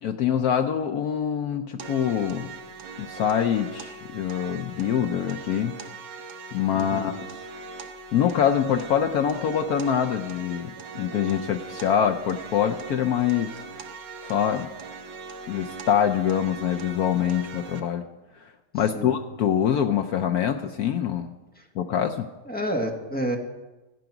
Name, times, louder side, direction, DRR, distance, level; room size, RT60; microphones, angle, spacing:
voice 1, 0.0-2.5 3.0-5.8 6.5-7.2 8.1-13.6 14.2-14.7 15.5-18.1 18.7-21.3 21.8-22.3, left 9 dB, 80° left, 5 dB, 0.8 m, -24 dB
sound 1, 1.8-17.8, right 4 dB, 80° right, 1.7 m, -40 dB
voice 2, 6.7-7.1 18.9-19.1 21.6-21.7 22.5-23.4, equal, 10° left, 2 dB, 0.6 m, -29 dB
14.0 x 9.1 x 5.9 m, 1.1 s
omnidirectional pair, 2.3 m